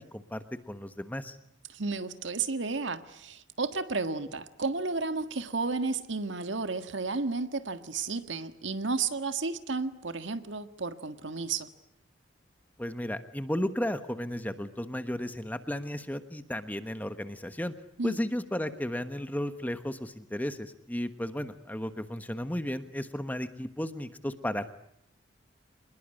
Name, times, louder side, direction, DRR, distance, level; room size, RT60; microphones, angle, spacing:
voice 1, 0.0-1.4 12.8-17.7 18.0-24.7, equal, 10° left, 10 dB, 1.2 m, -34 dB
voice 2, 1.7-11.7 18.0-18.2, right 4 dB, 75° right, 9 dB, 1.7 m, -32 dB
26.5 x 21.0 x 9.9 m, 0.76 s
head